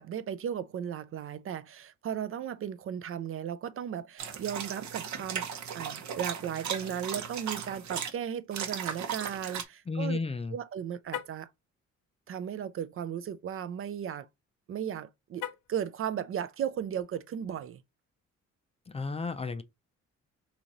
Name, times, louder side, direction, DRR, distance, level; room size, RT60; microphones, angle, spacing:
voice 1, 0.0-5.5 5.7-10.2 10.5-11.5 12.3-14.3 14.7-15.4 15.7-17.8, right 9 dB, 45° right, 0.4 m, -36 dB
sound 1, 4.2-8.1 8.5-9.6, right 8 dB, 70° right, 0.9 m, -37 dB
voice 2, 9.9-10.6 18.9-19.6, left 3 dB, 20° left, 0.4 m, -33 dB
Car, 11.0-11.5 15.3-15.8, left 11 dB, 85° left, 0.6 m, -39 dB
3.1 x 2.7 x 3.8 m
cardioid pair, 90°, 30 cm